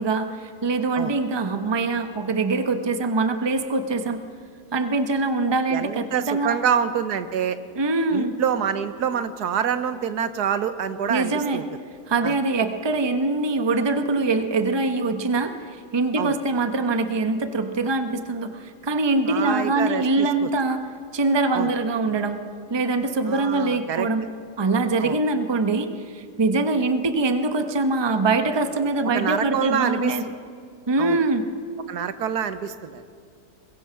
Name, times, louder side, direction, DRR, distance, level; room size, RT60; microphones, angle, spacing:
voice 1, 0.0-4.2 4.7-6.6 7.8-8.3 11.1-11.6 12.1-15.5 15.9-20.8 21.1-22.4 22.7-24.2 24.6-30.2 30.9-31.5, right 3 dB, 20° right, 8 dB, 0.8 m, -23 dB
voice 2, 5.7-7.6 8.1-11.6 12.2-12.4 16.2-16.4 19.3-20.5 21.5-21.7 23.3-24.1 25.0-25.2 29.1-30.2 31.0-31.2 31.9-33.1, right 8 dB, 75° right, 11 dB, 1.4 m, -26 dB
22.0 x 21.5 x 5.8 m, 2.3 s
omnidirectional pair, 1.7 m